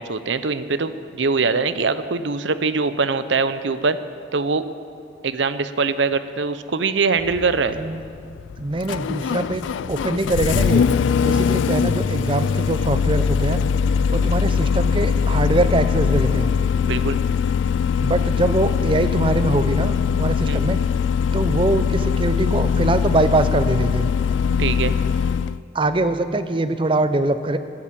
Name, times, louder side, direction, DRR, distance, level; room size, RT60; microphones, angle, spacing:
voice 1, 0.0-4.0 4.3-4.6 5.2-7.8 16.8-17.2 20.5-20.6 24.6-24.9, right 4 dB, 75° right, 12 dB, 0.7 m, -22 dB
Engine starting, 7.2-25.6, left 6 dB, 80° left, 0.3 m, -21 dB
voice 2, 8.6-10.9 11.2-13.6 14.1-16.5 18.0-20.8 21.3-24.1 25.7-27.6, right 2 dB, 25° right, 11 dB, 0.6 m, -22 dB
13.5 x 11.0 x 8.6 m, 2.3 s
head